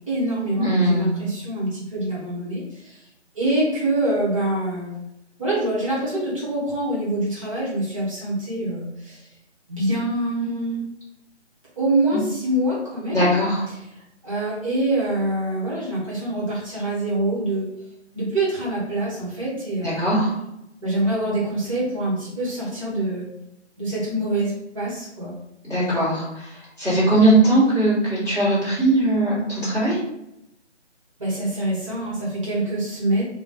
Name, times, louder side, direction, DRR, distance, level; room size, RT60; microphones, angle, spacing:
voice 1, 0.1-3.0 3.3-5.0 5.4-9.2 9.7-10.8 11.8-13.3 13.7-13.8 14.2-17.7 18.1-20.1 20.8-23.3 23.8-25.3 31.2-33.2, right 1 dB, 30° right, -6 dB, 1.1 m, -25 dB
voice 2, 0.6-1.1 13.1-13.6 19.8-20.3 25.6-26.2 26.8-30.0, right 1 dB, 5° left, -19 dB, 1.3 m, -19 dB
3.1 x 2.3 x 3.8 m, 0.85 s
figure-of-eight pair, 155°, 35 cm